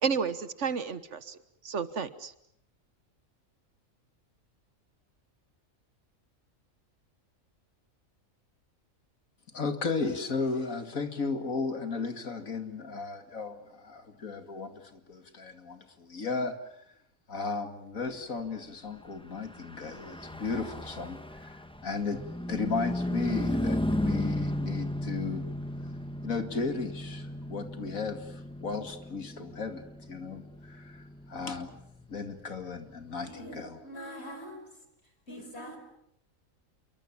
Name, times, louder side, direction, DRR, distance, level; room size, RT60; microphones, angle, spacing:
voice 1, 0.0-1.4 1.6-2.3, right 6 dB, 60° right, 1.6 m, -31 dB
voice 2, 9.5-16.9 17.3-25.5 25.8-25.9 26.2-31.8 32.1-33.8 35.4-35.5, left 4 dB, 80° left, 2.7 m, -35 dB
Car passing by / Truck, 19.4-33.1, left 1 dB, 5° left, 1.2 m, -35 dB
voice 3, 33.2-34.7 35.3-35.8, equal, 50° left, 5.6 m, -43 dB
28.0 x 23.5 x 7.3 m
omnidirectional pair, 1.4 m